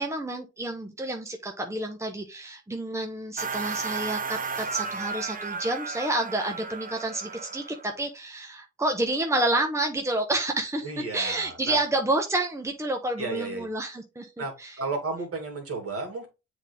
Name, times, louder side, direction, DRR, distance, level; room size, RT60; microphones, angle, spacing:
voice 1, 0.0-14.8, right 2 dB, 10° right, 1.2 m, -29 dB
sound 1, 3.4-7.9, right 5 dB, 30° right, 0.9 m, -34 dB
voice 2, 10.8-11.8 13.2-13.7 14.4-16.3, right 3 dB, 50° right, 2.6 m, -33 dB
7.1 x 3.8 x 3.5 m
supercardioid pair, 55°, 29 cm